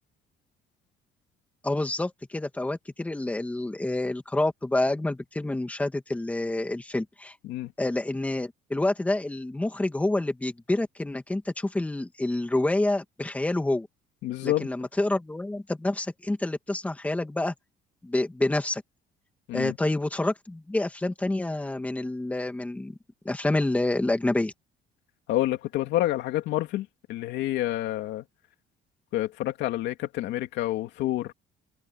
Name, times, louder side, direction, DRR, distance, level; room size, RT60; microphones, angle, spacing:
voice 1, 1.6-7.3 7.8-13.9 14.4-17.5 18.0-18.8 19.5-23.0 23.2-24.5, left 2 dB, 10° left, 2.3 m, -28 dB
voice 2, 14.2-14.7 19.5-19.8 25.3-28.2 29.1-31.3, left 14 dB, 75° left, 2.8 m, -28 dB
cardioid pair, 165°, 18 cm